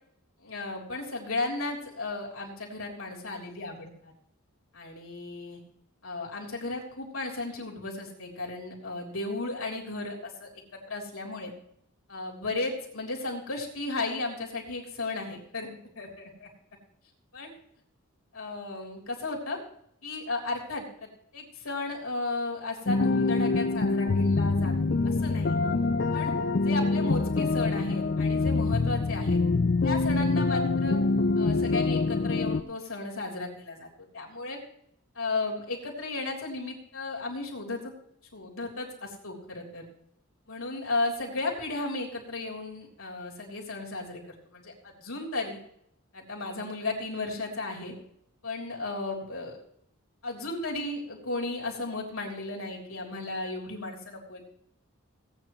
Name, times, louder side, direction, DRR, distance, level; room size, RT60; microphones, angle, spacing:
voice 1, 0.4-4.1 4.7-5.6 6.0-10.5 10.9-11.5 12.1-16.5 17.3-17.5 18.3-19.6 20.0-25.6 26.1-26.3 26.6-29.4 29.8-31.0 31.3-33.9 34.1-34.6 35.1-37.9 38.3-39.8 40.5-44.2 44.4-45.6 46.1-47.9 48.4-49.6 50.2-54.5, left 2 dB, 80° left, -2 dB, 3.4 m, -34 dB
sound 1, 22.9-32.6, left 3 dB, 45° left, 0.5 m, -25 dB
17.5 x 9.1 x 3.2 m, 0.72 s
head